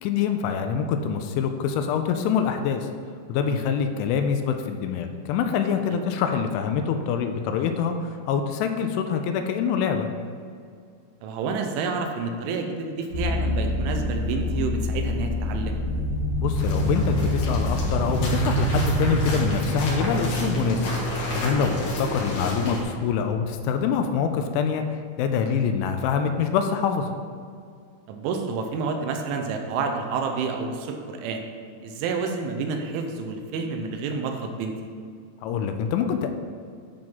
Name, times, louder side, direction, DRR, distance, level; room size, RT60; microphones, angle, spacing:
voice 1, 0.0-2.9 3.3-10.1 16.4-20.9 21.3-24.8 25.2-27.1 35.4-36.3, left 7 dB, 85° left, 6 dB, 2.9 m, -25 dB
voice 2, 11.2-15.8 25.4-25.7 28.1-31.5 31.8-34.8, right 4 dB, 80° right, 4 dB, 3.1 m, -29 dB
sound 1, 13.1-24.5, equal, 60° right, 1.5 m, -27 dB
sound 2, 16.5-22.8, left 1 dB, 60° left, 2.5 m, -33 dB
10.5 x 3.8 x 5.9 m, 2.2 s
omnidirectional pair, 5.6 m